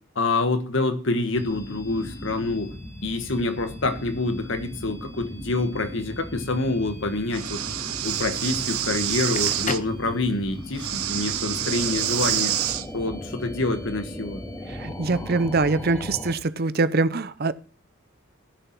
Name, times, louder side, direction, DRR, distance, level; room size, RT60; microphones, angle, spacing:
voice 1, 0.1-2.7 3.0-7.6 8.0-12.5 12.9-14.4, left 2 dB, 60° left, 8 dB, 1.6 m, -27 dB
sound 1, 1.3-16.3, left 1 dB, 15° left, 1.9 m, -37 dB
Breathing, 7.3-9.8 10.7-12.9, right 12 dB, 90° right, 0.9 m, -27 dB
Crackle, 9.1-10.7, left 5 dB, 35° left, 0.6 m, -34 dB
voice 2, 14.7-17.5, right 3 dB, 45° right, 15 dB, 0.6 m, -23 dB
15.0 x 7.0 x 6.0 m, 0.40 s
head